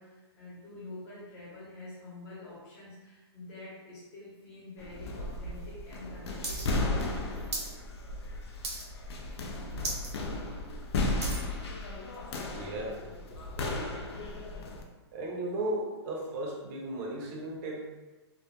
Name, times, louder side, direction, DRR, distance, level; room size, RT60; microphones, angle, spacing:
voice 1, 0.0-7.4 11.0-11.5, left 2 dB, 30° left, -8 dB, 0.9 m, -47 dB
sound 1, 4.8-14.8, left 2 dB, 70° left, 0.4 m, -35 dB
sound 2, 6.4-6.6 6.9-7.7 8.1-8.3 8.6-9.1 9.4-9.5 9.8-10.1 10.5-11.5 12.1-12.2, right 2 dB, 80° right, 0.8 m, -36 dB
voice 2, 12.5-13.0 13.3-14.0 15.1-18.0, right 1 dB, 35° right, -1 dB, 0.6 m, -36 dB
2.2 x 2.1 x 2.8 m, 1.2 s
hypercardioid pair, 145°, 14 cm